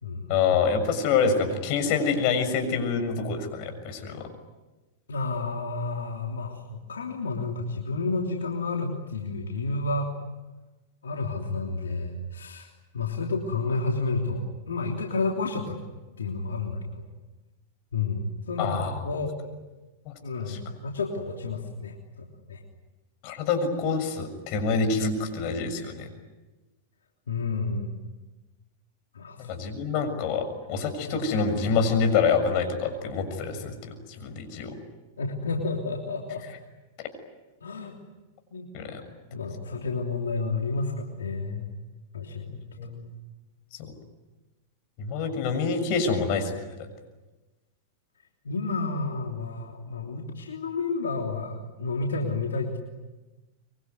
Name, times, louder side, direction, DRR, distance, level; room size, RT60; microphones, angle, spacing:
voice 1, 0.3-4.3 18.6-19.0 20.5-20.6 23.2-26.1 29.4-33.9 34.2-34.8 38.7-39.0 42.8-43.1 45.0-46.5, left 5 dB, 50° left, 7 dB, 6.8 m, -26 dB
voice 2, 5.1-10.1 11.0-12.7 12.9-15.8 16.2-17.0 17.9-19.3 20.2-22.6 27.3-28.0 29.1-29.5 31.0-31.3 35.2-36.4 37.6-38.0 38.5-38.7 39.3-41.7 42.1-42.5 48.4-52.8, left 3 dB, 85° left, 1 dB, 3.2 m, -30 dB
25.0 x 24.0 x 9.6 m, 1.1 s
hypercardioid pair, 105°, 0 cm